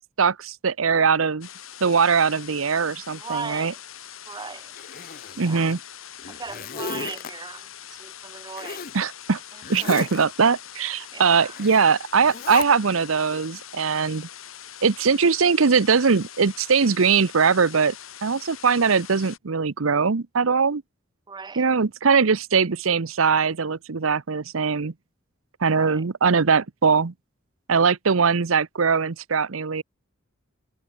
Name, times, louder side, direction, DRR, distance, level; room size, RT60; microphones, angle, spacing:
voice 1, 0.2-1.5 1.8-3.7 5.4-5.8 8.9-9.4 9.7-14.3 14.8-17.9 18.2-20.8 21.6-24.9 25.6-27.1 27.7-29.8, right 5 dB, 80° right, 0.8 m, -21 dB
sound 1, 1.4-19.4, left 10 dB, 80° left, 4.5 m, -43 dB
voice 2, 3.2-3.8 4.3-4.7 5.5-5.7 6.3-7.7 8.0-8.8 9.8-9.9 11.1-11.5 21.3-21.6 25.7-26.0, right 5 dB, 20° right, 0.5 m, -37 dB
Zipper (clothing), 4.8-5.7 6.2-7.3 8.6-9.0 9.6-10.2 11.5-11.8 12.2-12.6, left 5 dB, 45° left, 0.8 m, -34 dB
head